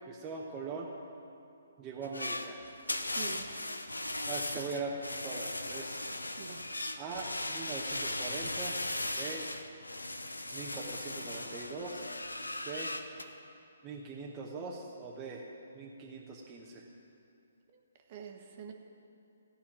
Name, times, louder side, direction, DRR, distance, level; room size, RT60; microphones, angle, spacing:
voice 1, 0.1-0.9 1.8-2.6 4.3-5.0 5.2-6.0 7.0-8.7 9.2-9.5 10.5-12.1 12.7-12.9 13.8-15.4 15.7-16.8, right 4 dB, 20° right, -2 dB, 1.0 m, -41 dB
sound 1, 2.0-13.2, left 1 dB, 85° left, 0.8 m, -38 dB
voice 2, 3.1-3.5 6.4-6.7 17.7-17.8 18.1-18.7, right 8 dB, 35° right, 3 dB, 1.3 m, -46 dB
14.5 x 5.7 x 8.9 m, 2.6 s
figure-of-eight pair, 135°, 0 cm